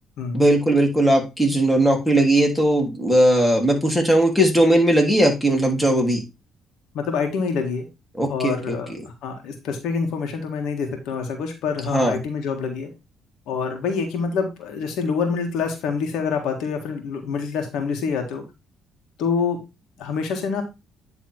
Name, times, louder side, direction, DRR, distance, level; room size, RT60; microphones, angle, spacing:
voice 1, 0.3-6.2 8.2-9.0 11.8-12.2, right 1 dB, ahead, 1 dB, 2.9 m, -18 dB
voice 2, 6.9-7.9 8.3-12.9 13.5-18.4 19.2-19.6 20.0-20.6, left 5 dB, 80° left, 4 dB, 1.8 m, -26 dB
9.7 x 3.6 x 4.5 m, 0.25 s
supercardioid pair, 75°, 0 cm